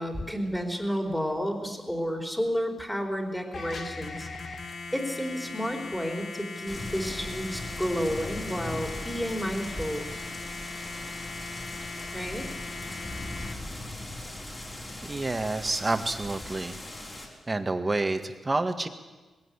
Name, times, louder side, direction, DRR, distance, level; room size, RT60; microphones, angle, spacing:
voice 1, 0.0-4.3 4.9-10.0 12.1-12.5, equal, 5° left, 4 dB, 3.9 m, -31 dB
sound 1, 3.5-13.5, left 3 dB, 60° left, 2.1 m, -39 dB
sound 2, 6.7-17.3, left 1 dB, 25° left, 5.2 m, -39 dB
voice 2, 15.0-16.8 17.5-18.9, right 2 dB, 25° right, 8 dB, 1.8 m, -29 dB
21.0 x 16.5 x 10.0 m, 1.2 s
cardioid pair, 95°, 0 cm